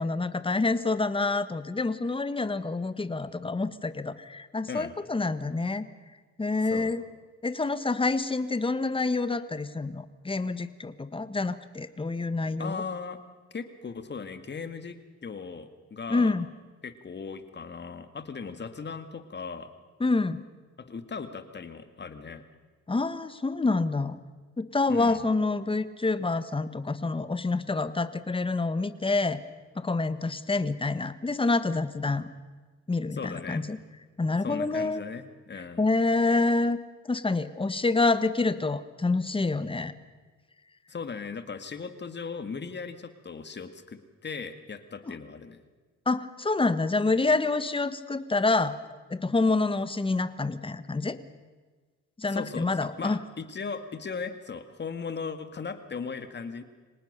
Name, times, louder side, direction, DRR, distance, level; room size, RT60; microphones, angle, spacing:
voice 1, 0.0-5.9 6.4-7.0 7.4-12.8 16.1-16.5 20.0-20.5 22.9-24.2 24.6-29.4 29.7-32.3 32.9-33.8 34.2-35.0 35.5-36.8 37.1-39.9 45.1-45.2 46.1-48.7 49.1-51.2 52.2-53.2, left 3 dB, 15° left, 13 dB, 1.3 m, -27 dB
voice 2, 12.6-13.2 13.5-15.0 15.2-16.3 16.8-19.7 20.8-22.4 24.9-25.3 33.1-33.6 34.4-35.9 40.9-45.6 52.2-56.6, left 5 dB, 35° left, 10 dB, 2.1 m, -38 dB
25.0 x 19.0 x 6.8 m, 1.4 s
cardioid pair, 90°, 30 cm